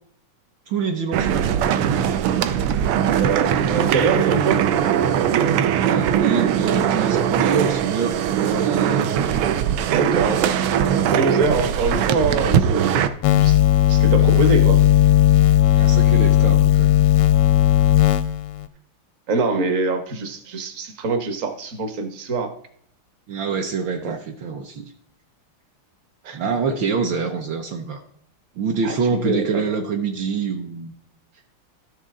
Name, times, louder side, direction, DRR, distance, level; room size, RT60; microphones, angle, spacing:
voice 1, 0.7-1.6 5.8-9.2 15.8-17.1 23.3-24.9 26.3-28.0 28.6-30.9, right 5 dB, 70° right, 3 dB, 1.4 m, -26 dB
sound 1, 1.1-13.1, right 9 dB, 85° right, 1.6 m, -20 dB
voice 2, 3.2-4.6 10.0-10.7 11.1-13.0 13.3-13.6 13.9-14.8 19.3-22.5 24.0-24.2 26.2-26.4 28.8-28.9 29.2-29.6, right 3 dB, 45° right, 7 dB, 1.2 m, -24 dB
sound 2, 13.2-18.7, left 11 dB, 85° left, 1.5 m, -15 dB
13.0 x 6.7 x 3.7 m, 0.66 s
omnidirectional pair, 2.4 m